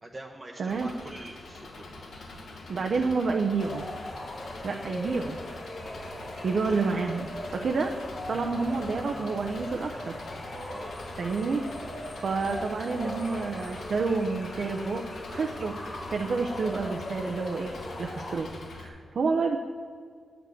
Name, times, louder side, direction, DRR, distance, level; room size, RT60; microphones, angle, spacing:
voice 1, 0.0-1.9 10.6-10.9, right 2 dB, 25° right, 0 dB, 0.8 m, -44 dB
voice 2, 0.6-0.9 2.7-3.8 4.6-5.4 6.4-7.9 8.3-10.1 11.2-11.7 12.2-15.0 15.3-15.7 16.1-17.7 18.0-18.5 18.8-19.6, right 4 dB, 60° right, 2 dB, 0.7 m, -29 dB
Engine, 0.7-18.9, left 2 dB, 85° left, 1.6 m, -44 dB
sound 1, 3.6-18.4, left 1 dB, 50° left, 1.7 m, -40 dB
9.8 x 5.2 x 7.9 m, 2.1 s
wide cardioid pair, 110°, 0 cm